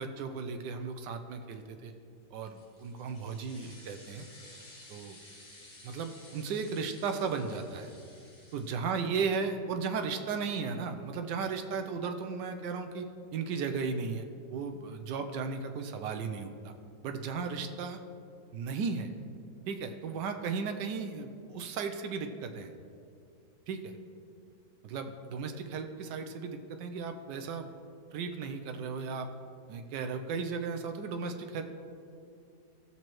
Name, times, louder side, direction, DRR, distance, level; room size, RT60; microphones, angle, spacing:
voice 1, 0.0-1.9 2.3-4.3 4.9-5.2 5.8-7.9 8.5-16.7 17.0-18.0 18.5-19.1 19.7-22.7 23.7-24.0 24.8-27.7 28.1-29.3 29.7-31.6, right 5 dB, 90° right, 6 dB, 1.3 m, -35 dB
sound 1, 2.4-9.3, left 1 dB, 70° left, 2.7 m, -55 dB
16.5 x 6.8 x 3.0 m, 2.4 s
omnidirectional pair, 1.8 m